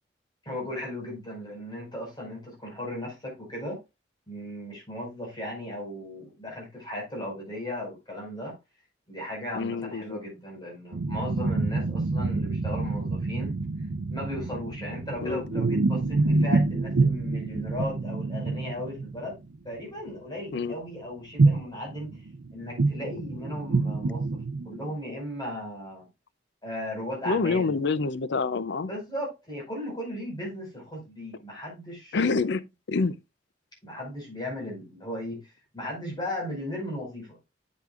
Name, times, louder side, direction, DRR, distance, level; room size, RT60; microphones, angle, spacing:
voice 1, 0.5-3.8 4.3-8.5 9.1-13.5 14.1-19.4 19.6-22.2 22.5-24.4 24.6-26.1 26.6-27.7 28.9-32.4 33.8-35.4 35.7-37.4, left 1 dB, 25° left, 5.3 m, -36 dB
voice 2, 9.5-10.2 15.2-15.4 20.5-20.8 27.3-28.9 32.1-33.2, left 4 dB, 65° left, 0.5 m, -27 dB
sound 1, 10.9-19.3 19.7-19.8 21.4-21.6 21.9-24.9, right 3 dB, 80° right, 0.6 m, -27 dB
8.5 x 8.1 x 2.5 m
head